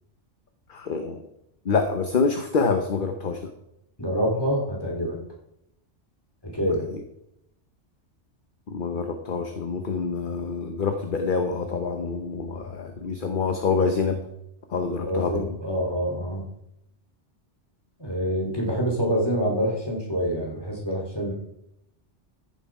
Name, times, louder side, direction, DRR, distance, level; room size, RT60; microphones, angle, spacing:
voice 1, 0.7-1.2 1.6-3.4 8.7-14.2 14.7-15.5, left 4 dB, 50° left, 6 dB, 1.0 m, -26 dB
voice 2, 4.0-5.2 6.4-6.8 15.0-16.4 18.0-21.3, equal, 20° left, -2 dB, 3.3 m, -26 dB
14.5 x 7.3 x 4.8 m, 0.81 s
omnidirectional pair, 1.2 m